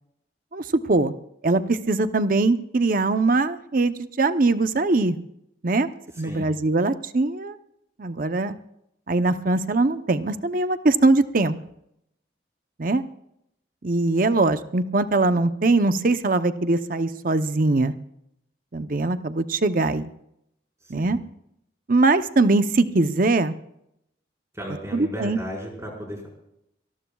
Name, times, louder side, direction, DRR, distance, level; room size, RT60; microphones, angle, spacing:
voice 1, 0.5-1.1 1.4-5.2 5.6-5.9 6.2-7.6 8.0-8.6 9.1-11.5 12.8-13.0 13.8-17.9 18.7-20.1 20.9-21.2 21.9-23.5 24.9-25.4, right 3 dB, 50° right, 11 dB, 0.7 m, -21 dB
voice 2, 20.8-21.1 24.5-26.3, equal, 15° right, -2 dB, 4.9 m, -34 dB
25.0 x 19.5 x 2.4 m, 0.79 s
head